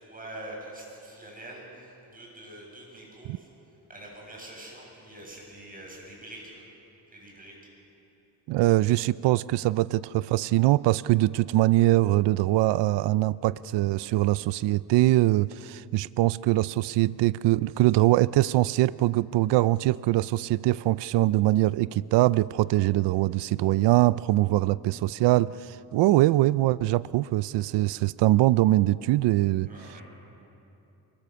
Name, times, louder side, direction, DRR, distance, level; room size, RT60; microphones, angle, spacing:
voice 1, 0.0-3.5 3.9-6.6 7.1-7.5 29.6-30.0, right 1 dB, 20° right, -2 dB, 7.8 m, -44 dB
voice 2, 8.5-29.7, right 17 dB, 85° right, 18 dB, 0.5 m, -23 dB
24.0 x 22.5 x 6.9 m, 2.9 s
cardioid pair, 120°, 41 cm